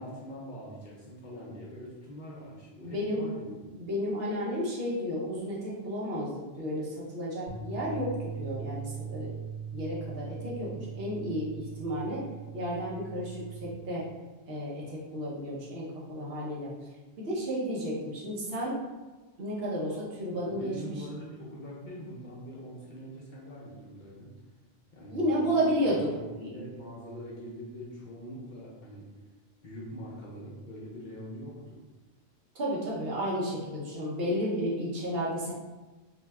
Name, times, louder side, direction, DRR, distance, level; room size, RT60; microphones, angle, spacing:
voice 1, 0.0-3.4 20.6-24.3 24.9-25.6 26.0-29.1 29.6-31.8, equal, 50° left, -6 dB, 0.7 m, -43 dB
voice 2, 2.8-9.3 9.7-12.3 12.5-14.1 14.5-16.7 17.2-18.8 19.4-20.9 25.1-26.1 26.4-26.5 32.5-35.5, equal, 65° right, -5 dB, 0.9 m, -32 dB
sound 1, 7.5-13.7, right 7 dB, 80° right, 1.2 m, -40 dB
2.7 x 2.2 x 3.2 m, 1.2 s
omnidirectional pair, 1.1 m